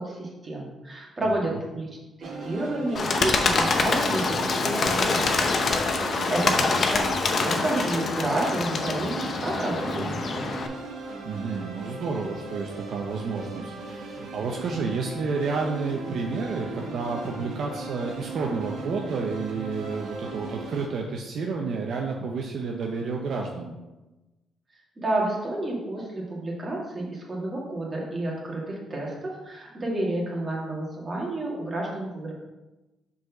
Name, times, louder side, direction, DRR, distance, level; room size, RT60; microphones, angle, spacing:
voice 1, 0.0-1.9 2.2-5.5 6.0-10.6 25.0-32.3, right 1 dB, 30° right, -3 dB, 2.1 m, -30 dB
voice 2, 1.2-1.6 6.2-6.6 11.2-23.7, right 4 dB, 65° right, 1 dB, 0.7 m, -30 dB
sound 1, 2.2-20.9, right 2 dB, 90° right, 1.5 m, -37 dB
Bird, 3.0-10.7, left 4 dB, 50° left, 0.7 m, -25 dB
5.1 x 4.0 x 5.9 m, 1.1 s
cardioid pair, 90°, 0 cm